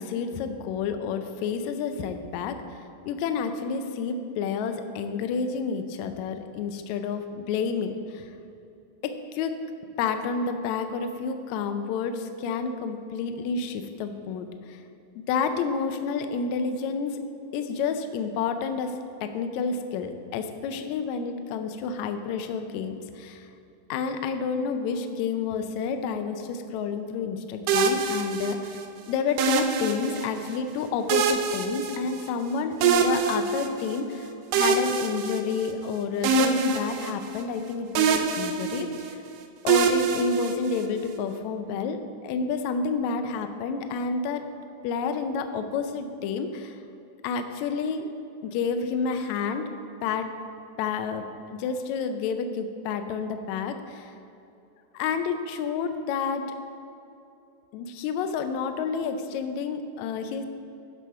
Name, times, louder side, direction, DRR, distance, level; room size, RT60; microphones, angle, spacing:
voice 1, 0.0-2.8 3.0-8.3 9.0-9.5 10.0-14.8 15.3-17.2 17.5-23.5 23.9-28.8 29.1-39.2 39.6-42.0 42.2-44.5 44.8-46.8 47.2-48.1 48.4-49.7 50.0-50.3 50.8-54.1 54.9-56.5 57.7-60.5, left 5 dB, 80° left, 8 dB, 1.7 m, -30 dB
sound 1, 27.7-28.8 29.4-30.5 31.1-32.5 32.8-34.0 34.5-35.9 36.2-37.6 38.0-39.2 39.7-41.0, right 4 dB, 80° right, 2.1 m, -25 dB
12.0 x 4.8 x 5.6 m, 2.7 s
omnidirectional pair, 3.9 m